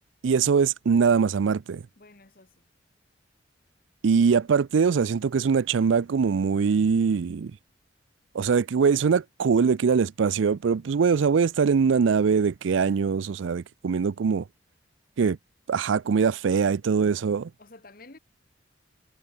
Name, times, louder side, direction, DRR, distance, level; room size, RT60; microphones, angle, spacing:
voice 1, 0.2-1.8 4.0-7.6 8.3-14.4 15.2-15.4 15.7-17.5, right 5 dB, 80° right, 0.4 m, -22 dB
voice 2, 2.0-2.6 17.6-18.2, left 2 dB, 50° left, 2.0 m, -50 dB
head